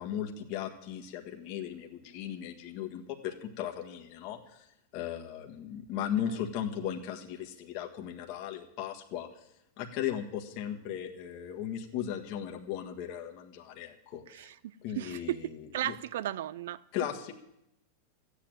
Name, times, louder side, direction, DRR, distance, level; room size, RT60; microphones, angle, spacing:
voice 1, 0.0-4.7 4.9-9.4 9.8-14.5 14.8-15.6 15.8-15.9 16.9-17.3, left 10 dB, 50° left, 1.6 m, -37 dB
voice 2, 14.3-16.8, right 13 dB, 75° right, 0.6 m, -36 dB
13.5 x 8.5 x 9.0 m
hypercardioid pair, 125°, 0 cm